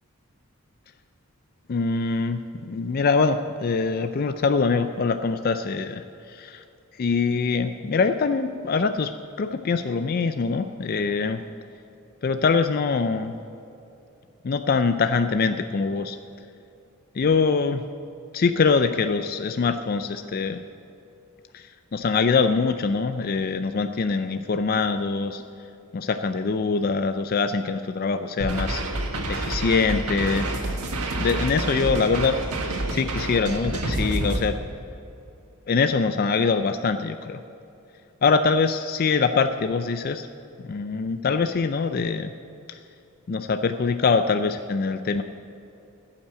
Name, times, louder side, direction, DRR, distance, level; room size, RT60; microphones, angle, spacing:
voice 1, 1.7-6.6 6.9-9.1 9.4-11.4 12.2-13.3 14.4-16.2 17.1-17.8 18.3-20.6 21.5-25.4 25.9-28.8 29.3-30.5 31.2-32.4 32.9-34.6 35.7-37.4 38.2-40.3 40.6-42.3 42.7-42.8 43.3-45.2, left 4 dB, 40° left, 9 dB, 0.4 m, -23 dB
sound 1, 28.4-34.4, right 2 dB, 85° right, 1.5 m, -28 dB
16.0 x 5.8 x 7.6 m, 2.7 s
head